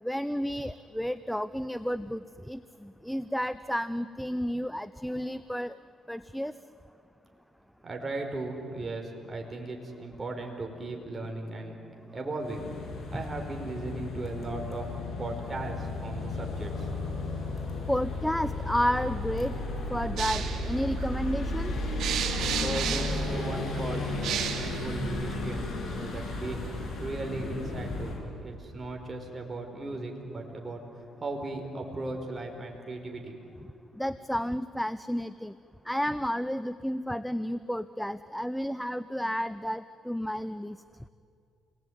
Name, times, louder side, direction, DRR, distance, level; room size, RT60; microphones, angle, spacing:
voice 1, 0.0-5.8 6.1-6.5 17.9-19.6 19.9-21.8 34.0-35.5 35.9-40.8, equal, ahead, 14 dB, 0.6 m, -31 dB
voice 2, 7.8-11.8 12.1-12.7 13.1-14.9 15.2-16.9 22.6-30.8 31.2-33.4, right 2 dB, 30° right, 2 dB, 4.8 m, -37 dB
sound 1, 12.4-28.2, left 2 dB, 45° left, 6.8 m, -34 dB
sound 2, 20.2-25.7, right 8 dB, 75° right, 2.5 m, -35 dB
29.0 x 20.5 x 9.5 m, 2.5 s
cardioid pair, 90°, 0 cm